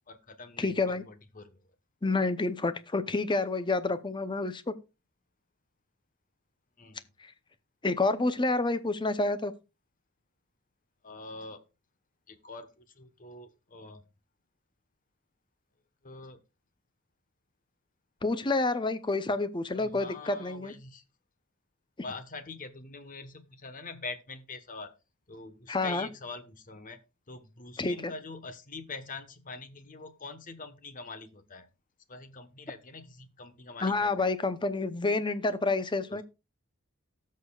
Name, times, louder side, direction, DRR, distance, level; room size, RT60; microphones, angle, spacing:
voice 1, 0.1-1.6 6.8-7.1 11.0-11.6 12.3-14.0 16.0-16.4 19.7-21.0 22.0-24.9 25.3-27.0 27.3-31.7 32.1-34.3 36.1-36.2, left 3 dB, 40° left, 1.1 m, -44 dB
voice 2, 0.6-1.0 2.0-4.7 7.8-9.5 18.2-20.7 25.7-26.1 27.8-28.1 33.8-36.2, left 3 dB, 20° left, 0.7 m, -28 dB
18.5 x 6.6 x 2.3 m
head